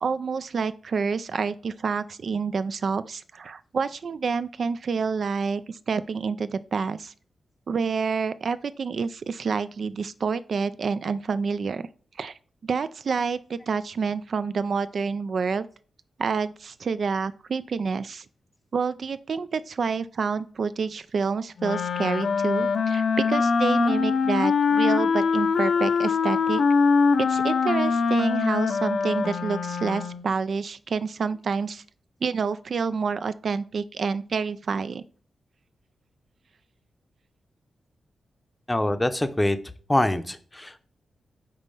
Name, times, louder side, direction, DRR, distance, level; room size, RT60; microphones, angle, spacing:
voice 1, 0.0-7.1 7.7-11.9 12.2-15.7 16.2-18.2 18.7-26.6 27.2-31.8 32.2-35.0, right 5 dB, 60° right, 13 dB, 0.3 m, -28 dB
Wind instrument woodwind instrument, 21.6-30.3, left 5 dB, 70° left, 0.6 m, -23 dB
voice 2, 38.7-39.6 39.9-40.8, left 1 dB, 15° left, 10 dB, 0.6 m, -24 dB
5.3 x 4.0 x 5.4 m, 0.43 s
cardioid pair, 90°, 0 cm